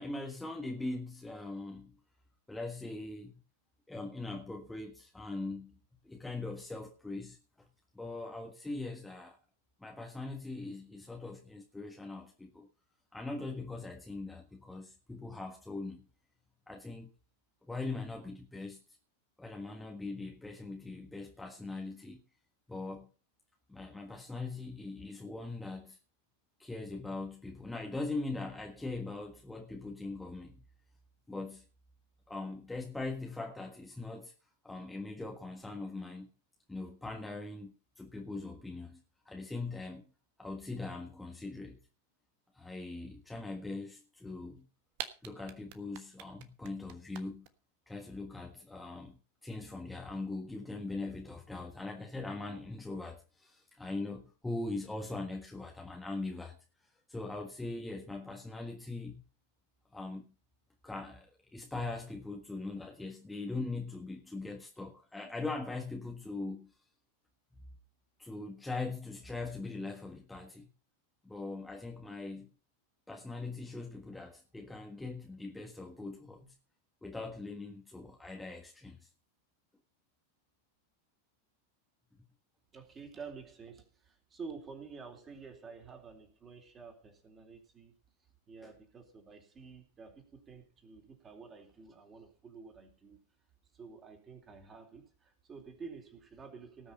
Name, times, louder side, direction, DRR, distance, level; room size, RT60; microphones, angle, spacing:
voice 1, 0.0-1.9 2.5-3.4 3.9-5.8 6.0-7.4 7.9-9.4 9.8-12.7 13.1-16.0 16.7-17.1 17.6-18.8 19.4-22.2 22.7-23.1 23.7-26.0 26.6-30.6 31.3-31.6 32.3-34.3 34.6-36.3 36.7-40.1 40.4-41.8 42.5-44.7 45.2-47.5 47.9-56.6 57.1-59.2 59.9-60.3 60.8-66.7 68.2-70.7 71.2-72.5 73.1-76.5 77.0-79.0 88.6-88.7, left 3 dB, 5° left, 1.6 m, -41 dB
sound 1, 44.6-44.7 44.9-47.5, right 11 dB, 45° right, 1.3 m, -42 dB
voice 2, 82.7-87.9 88.5-93.2 93.7-96.9, right 5 dB, 25° right, 3.8 m, -50 dB
18.5 x 6.5 x 5.6 m
figure-of-eight pair, 90°, 0 cm